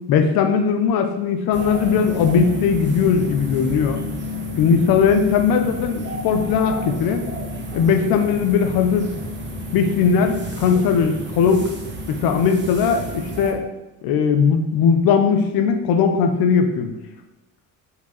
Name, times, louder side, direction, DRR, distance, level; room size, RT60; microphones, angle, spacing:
voice 1, 0.1-4.0 4.6-7.2 7.7-9.1 9.7-11.7 12.1-13.6 14.0-16.9, left 6 dB, 80° left, 6 dB, 0.9 m, -19 dB
sound 1, 1.5-13.5, left 2 dB, 30° right, 1.1 m, -30 dB
5.7 x 4.7 x 4.0 m, 0.97 s
cardioid pair, 100°, 37 cm